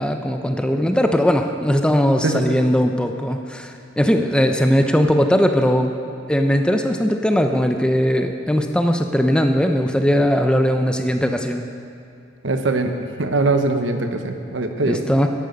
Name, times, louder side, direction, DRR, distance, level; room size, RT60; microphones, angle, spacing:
voice 1, 0.0-5.9 6.3-11.6 14.8-15.3, equal, 5° left, 5 dB, 0.6 m, -19 dB
voice 2, 12.4-12.9 13.2-15.0, right 3 dB, 70° right, 6 dB, 1.1 m, -21 dB
14.0 x 10.5 x 5.3 m, 2.5 s
head